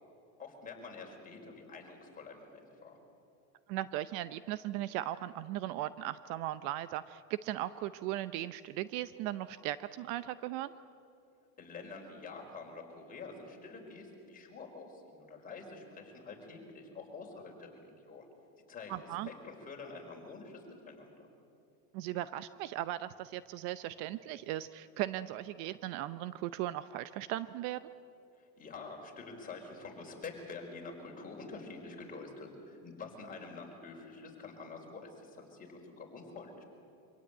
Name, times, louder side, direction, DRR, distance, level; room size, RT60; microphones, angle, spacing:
voice 1, 0.4-3.0 11.6-18.3 18.7-21.3 28.4-36.6, left 4 dB, 20° left, 0 dB, 4.9 m, -47 dB
voice 2, 3.7-10.7 18.9-19.3 21.9-27.8, right 14 dB, 50° right, 14 dB, 0.7 m, -37 dB
25.0 x 17.0 x 9.0 m, 2.6 s
supercardioid pair, 135°, 42 cm